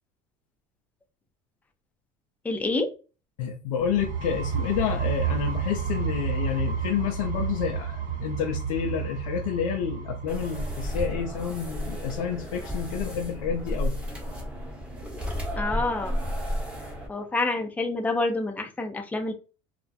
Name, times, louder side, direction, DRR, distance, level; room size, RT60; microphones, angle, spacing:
voice 1, 2.4-2.9 15.6-16.2 17.1-19.3, left 2 dB, 10° left, 4 dB, 0.5 m, -27 dB
voice 2, 3.4-14.0, left 8 dB, 85° left, 1 dB, 0.4 m, -29 dB
sound 1, 3.8-11.4, right 7 dB, 50° right, 0.9 m, -31 dB
sound 2, 10.3-17.1, equal, 5° right, 1.0 m, -32 dB
2.3 x 2.1 x 2.6 m, 0.33 s
supercardioid pair, 90°, 17 cm